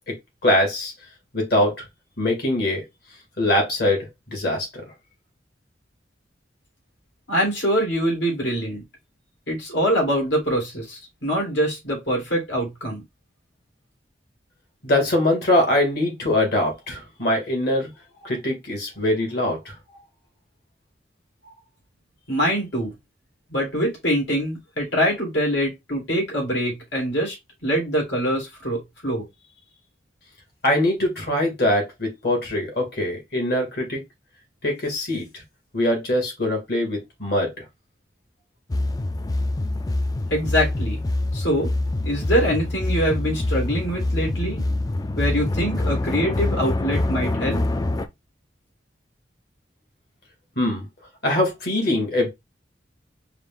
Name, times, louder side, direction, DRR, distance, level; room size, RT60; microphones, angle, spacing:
voice 1, 0.4-0.9 1.3-1.9 2.2-2.8 3.4-4.8 14.8-17.9 18.2-19.8 30.6-34.0 34.6-35.4 35.7-37.6 50.6-50.8 51.2-52.3, left 1 dB, 60° left, 2.2 m, -23 dB
voice 2, 7.3-8.8 9.5-13.0 22.3-22.9 23.5-27.4 27.6-29.2 40.3-41.0 41.3-41.7 42.0-44.6 45.2-47.6, equal, 80° left, 2.7 m, -24 dB
sound 1, 38.7-48.1, left 2 dB, 20° left, 0.4 m, -25 dB
4.9 x 2.5 x 3.6 m
head